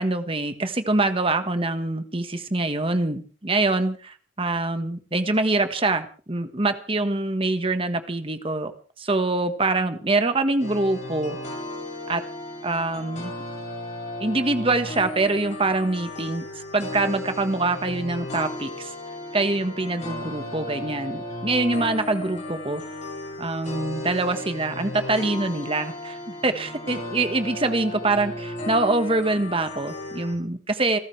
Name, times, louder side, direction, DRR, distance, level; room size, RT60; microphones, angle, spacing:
voice 1, 0.0-8.7 9.0-11.4 12.1-12.2 12.6-13.3 14.2-16.4 16.7-18.9 19.3-22.8 23.4-26.2 26.4-31.0, right 2 dB, 30° right, 8 dB, 1.5 m, -24 dB
sound 1, 10.6-30.3, left 1 dB, 40° left, 7.6 m, -35 dB
29.0 x 13.5 x 3.3 m, 0.40 s
head